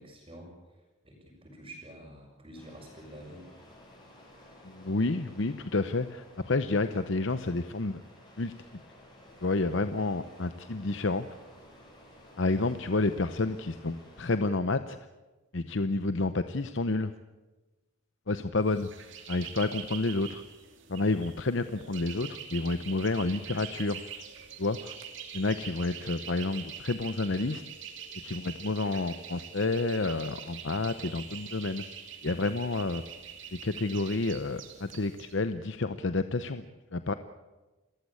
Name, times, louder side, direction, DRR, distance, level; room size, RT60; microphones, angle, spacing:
voice 1, 0.0-3.5, right 1 dB, 25° right, -6 dB, 5.9 m, -48 dB
sound 1, 2.5-14.4, left 1 dB, 20° left, 7.2 m, -54 dB
voice 2, 4.7-8.0 8.4-8.5 9.4-11.3 12.4-15.0 15.5-17.1 18.3-18.9 19.3-20.4 20.9-24.0 24.6-24.9 25.3-27.6 28.2-31.8 32.2-33.0 33.6-36.6 36.9-37.1, left 3 dB, 55° left, 11 dB, 0.8 m, -29 dB
sound 2, 18.7-35.3, right 8 dB, 55° right, 2.8 m, -44 dB
29.5 x 14.5 x 8.6 m, 1.2 s
head